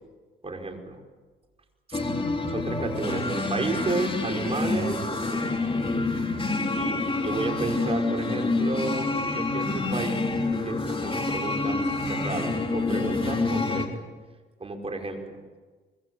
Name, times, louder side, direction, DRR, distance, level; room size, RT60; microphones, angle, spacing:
voice 1, 0.4-1.0 1.9-2.0 2.5-5.4 6.8-10.2 10.5-14.0 14.6-15.4, right 3 dB, 30° right, 3 dB, 5.3 m, -32 dB
sound 1, 1.9-13.9, left 3 dB, 25° left, 3.6 m, -27 dB
25.5 x 21.5 x 8.0 m, 1.4 s
cardioid pair, 90°, 20 cm